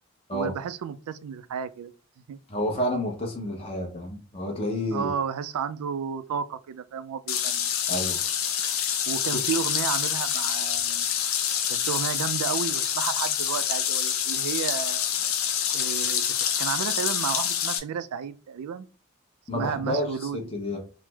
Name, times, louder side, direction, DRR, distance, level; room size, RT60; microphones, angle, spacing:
voice 1, 0.3-1.9 2.3-2.4 4.9-7.7 9.1-11.1 11.7-15.1 15.7-16.2 16.6-18.9 19.5-20.4, right 7 dB, 85° right, 0.3 m, -32 dB
voice 2, 2.5-5.1 7.9-8.2 19.5-20.8, left 1 dB, 25° left, 0.7 m, -30 dB
sound 1, 7.3-17.8, left 9 dB, 75° left, 0.5 m, -27 dB
3.2 x 2.0 x 3.3 m
head